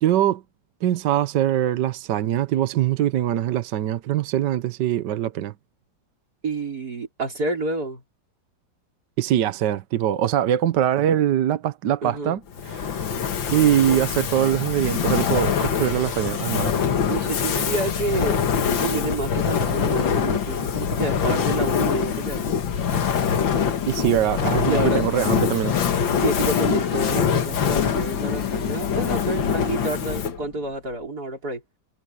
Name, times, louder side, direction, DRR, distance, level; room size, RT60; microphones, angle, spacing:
voice 1, 0.0-0.4 0.8-5.5 9.2-12.4 12.7-13.1 13.5-16.7 23.9-25.7, right 11 dB, 70° right, 1.4 m, -22 dB
voice 2, 6.4-8.0 12.0-12.4 17.1-18.4 18.8-22.5 24.7-25.0 26.2-31.6, right 2 dB, 55° right, 5.2 m, -29 dB
Fire, 12.5-30.5, left 7 dB, 85° left, 2.2 m, -24 dB
omnidirectional pair, 2.0 m